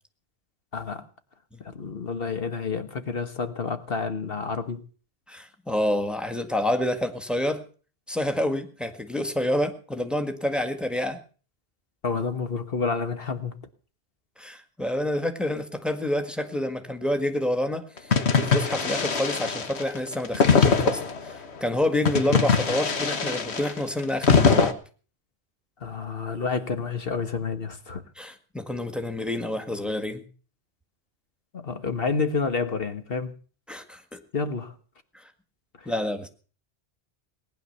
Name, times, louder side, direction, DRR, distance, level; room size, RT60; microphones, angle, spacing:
voice 1, 0.7-1.1 1.6-4.8 12.0-13.5 25.8-28.0 31.5-33.3 34.3-34.7 35.8-35.9, left 5 dB, 60° left, 1.5 m, -29 dB
voice 2, 5.3-7.6 8.1-11.2 14.4-24.7 28.2-30.2 33.7-34.2 35.1-35.3 35.8-36.3, left 1 dB, ahead, 1.7 m, -28 dB
sound 1, 18.1-21.3 22.1-24.7, left 5 dB, 80° left, 1.6 m, -22 dB
19.0 x 10.5 x 6.7 m
omnidirectional pair, 1.1 m